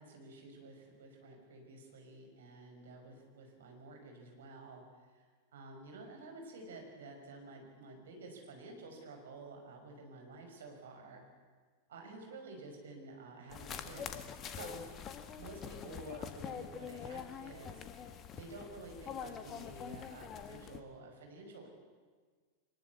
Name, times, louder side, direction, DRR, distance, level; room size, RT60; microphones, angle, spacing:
voice 1, 0.0-4.8 5.1-11.2 11.9-14.8 15.4-17.8 18.3-21.7, right 2 dB, 60° right, 3 dB, 5.7 m, -51 dB
sound 1, 13.5-20.8, left 7 dB, 30° left, 1.7 m, -45 dB
23.5 x 21.0 x 8.4 m, 1.5 s
figure-of-eight pair, 90°, 0 cm